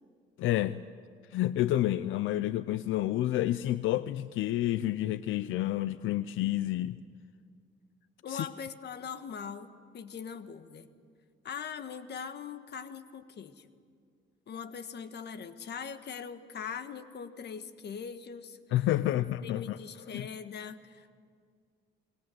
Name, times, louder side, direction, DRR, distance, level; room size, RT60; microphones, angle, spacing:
voice 1, 0.4-0.8 1.3-7.0 8.3-8.5 18.7-19.8 20.1-20.3, left 14 dB, 85° left, 0.6 m, -29 dB
voice 2, 8.2-10.9 11.4-13.7 14.5-18.8 19.1-21.1, left 6 dB, 60° left, 1.4 m, -41 dB
29.5 x 21.0 x 7.8 m
cardioid pair, 90°, 20 cm